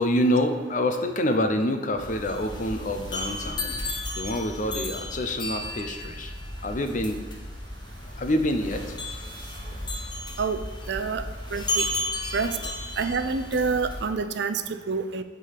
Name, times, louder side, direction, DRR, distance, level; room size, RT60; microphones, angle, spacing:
voice 1, 0.0-3.8 4.1-6.3 6.6-7.2 8.2-8.9 12.4-12.5, left 1 dB, 40° left, 6 dB, 0.7 m, -26 dB
sound 1, 2.0-14.1, left 1 dB, 25° left, 1.1 m, -34 dB
voice 2, 10.9-11.2 11.5-11.9 12.3-12.5 13.0-14.6 14.9-15.2, right 4 dB, 60° right, 10 dB, 0.5 m, -27 dB
8.2 x 3.9 x 6.6 m, 1.3 s
head